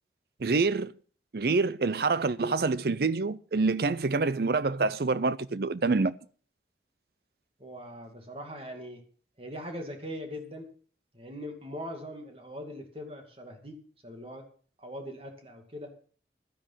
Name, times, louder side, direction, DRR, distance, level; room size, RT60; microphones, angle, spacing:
voice 1, 0.4-0.9 1.3-6.1, right 3 dB, 55° right, 0.5 m, -26 dB
voice 2, 7.6-9.0 9.4-10.7 11.1-13.7 14.0-14.5 14.8-15.9, equal, 30° right, 2.3 m, -41 dB
12.5 x 10.0 x 5.6 m
head